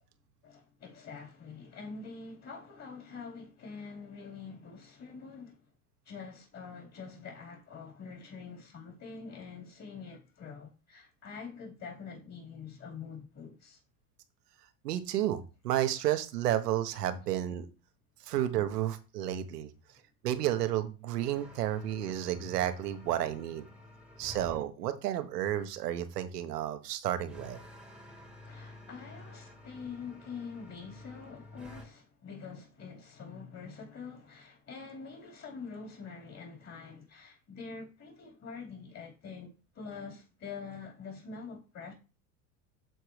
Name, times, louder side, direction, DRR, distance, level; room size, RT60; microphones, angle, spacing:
voice 1, 0.4-5.6 6.0-13.8 24.2-24.3 28.4-41.9, left 5 dB, 35° left, 4.5 m, -45 dB
voice 2, 14.8-17.7 18.2-19.7 20.2-23.6 24.2-27.6, right 12 dB, 85° right, 1.2 m, -31 dB
sound 1, 21.2-24.6 27.3-31.9, left 1 dB, ahead, 1.7 m, -50 dB
12.5 x 4.6 x 3.3 m
hypercardioid pair, 100°, 46 cm